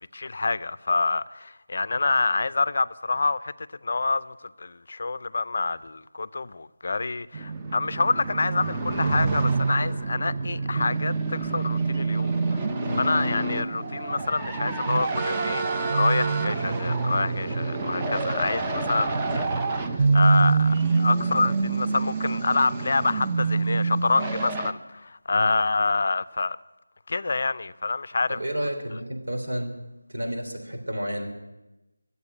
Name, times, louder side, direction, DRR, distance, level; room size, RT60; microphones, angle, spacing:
voice 1, 0.1-3.5 3.8-12.7 13.0-19.6 20.1-26.6 27.1-28.4, left 3 dB, 50° left, 0.5 m, -27 dB
sound 1, 7.3-24.7, right 3 dB, 15° right, 0.6 m, -26 dB
voice 2, 28.3-29.8 30.1-31.3, equal, 70° right, 3.6 m, -31 dB
13.5 x 8.2 x 9.8 m
figure-of-eight pair, 170°, 0 cm